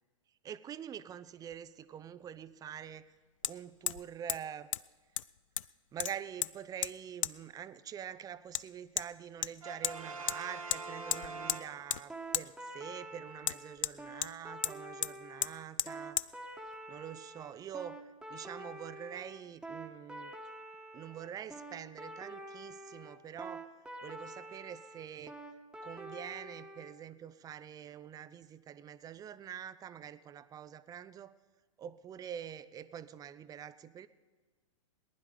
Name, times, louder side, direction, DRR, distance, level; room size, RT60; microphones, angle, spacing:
voice 1, 0.4-3.1 3.5-4.7 5.9-16.2 16.9-18.0 18.3-20.3 20.9-23.7 24.0-25.4 25.8-31.3 31.8-34.1, right 9 dB, 20° right, 15 dB, 0.6 m, -45 dB
Hammer, 1.5-1.6 3.4-3.5 3.9-4.0 4.3-4.4 4.7-4.8 5.2-5.7 6.0-6.5 6.8-6.9 7.2-7.3 8.5-8.6 9.0-9.1 9.4-10.0 10.3-10.4 10.7-10.8 11.1-11.6 11.9-12.0 12.3-12.5 13.4-14.3 14.6-14.8 15.0-15.1 15.4-15.5 15.8-16.3, left 11 dB, 70° left, 0.4 m, -34 dB
Brass instrument, 9.6-12.3, right 3 dB, 90° right, 1.5 m, -44 dB
sound 1, 12.1-26.9, right 1 dB, 5° right, 1.4 m, -47 dB
19.0 x 11.0 x 5.1 m, 1.4 s
hypercardioid pair, 105°, 17 cm